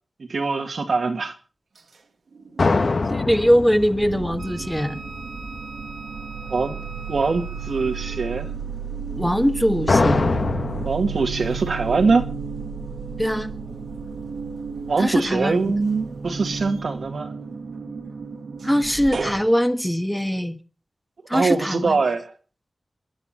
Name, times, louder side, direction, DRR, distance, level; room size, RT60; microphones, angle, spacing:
voice 1, 0.3-1.3 6.5-6.8 7.1-8.5 10.8-12.3 14.9-17.3 21.3-22.3, right 4 dB, 75° right, 1.9 m, -23 dB
sound 1, 2.3-3.2 3.5-19.4, right 5 dB, 90° right, 1.7 m, -33 dB
sound 2, 2.6-5.6 9.9-10.9, left 3 dB, 55° left, 1.3 m, -23 dB
voice 2, 3.1-5.0 9.2-10.3 13.2-13.5 15.0-15.7 18.6-20.5 21.3-22.0, equal, 5° left, 1.3 m, -21 dB
Wind instrument woodwind instrument, 4.4-8.6, right 3 dB, 45° right, 2.0 m, -41 dB
27.5 x 11.0 x 4.3 m
wide cardioid pair, 110°, 0 cm